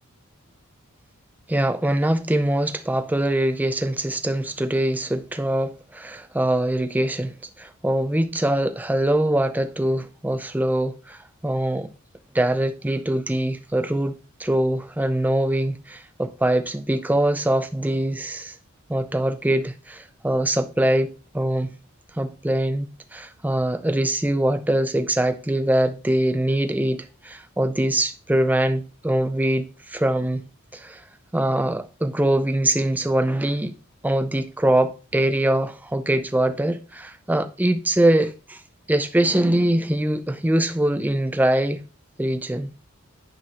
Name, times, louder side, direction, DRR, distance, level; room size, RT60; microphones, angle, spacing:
voice 1, 1.5-11.9 12.3-18.5 18.9-21.7 22.1-30.5 30.7-31.0 31.3-33.8 34.0-38.6 38.9-41.8 42.2-42.7, right 1 dB, 10° right, 0.5 m, -23 dB
10.5 x 4.6 x 2.9 m
head